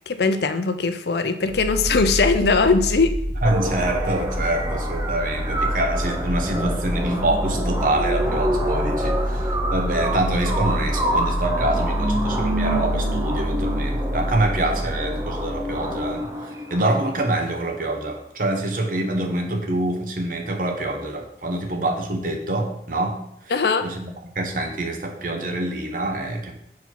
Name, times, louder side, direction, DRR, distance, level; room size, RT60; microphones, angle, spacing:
voice 1, 0.1-3.1 23.5-23.9, left 4 dB, 65° left, 9 dB, 0.5 m, -20 dB
sound 1, 1.4-16.2, equal, 5° left, 2.1 m, -27 dB
sound 2, 3.4-17.4, right 1 dB, 20° right, 0.6 m, -28 dB
voice 2, 3.4-16.3 16.7-23.5 23.8-26.5, right 1 dB, 50° right, 4 dB, 0.9 m, -25 dB
4.7 x 4.2 x 5.8 m, 0.74 s
head